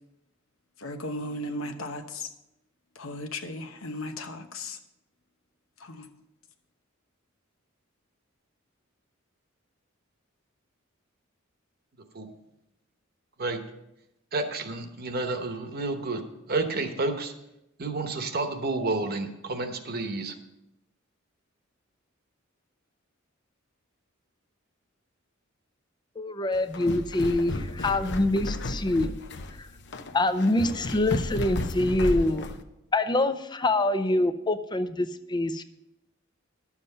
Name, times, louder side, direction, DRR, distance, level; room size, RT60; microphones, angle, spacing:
voice 1, 0.8-2.3 3.0-4.8 5.8-6.1, left 1 dB, 85° left, 7 dB, 1.0 m, -36 dB
voice 2, 14.3-16.2 16.5-17.3 17.8-20.3, right 2 dB, 50° right, 7 dB, 1.1 m, -30 dB
voice 3, 26.2-29.1 29.6-29.7 30.1-32.4 32.9-35.6, left 2 dB, 20° left, 11 dB, 0.5 m, -25 dB
sound 1, 26.6-32.6, left 2 dB, 60° left, 0.7 m, -33 dB
11.0 x 7.3 x 5.5 m, 0.89 s
head